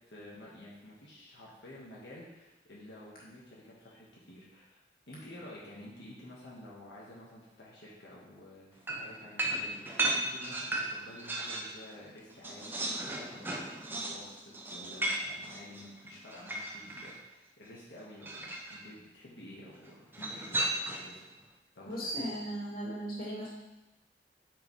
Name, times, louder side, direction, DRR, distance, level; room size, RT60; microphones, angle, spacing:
voice 1, 0.1-14.4 14.7-21.2 21.7-22.3, left 1 dB, 80° left, -6 dB, 1.4 m, -51 dB
sound 1, 8.9-11.8 12.1-17.2 18.2-18.8 20.1-21.2, right 1 dB, 10° right, 0.5 m, -35 dB
voice 2, 21.8-23.5, right 1 dB, 55° left, -6 dB, 2.4 m, -37 dB
8.9 x 5.0 x 3.2 m, 0.99 s
head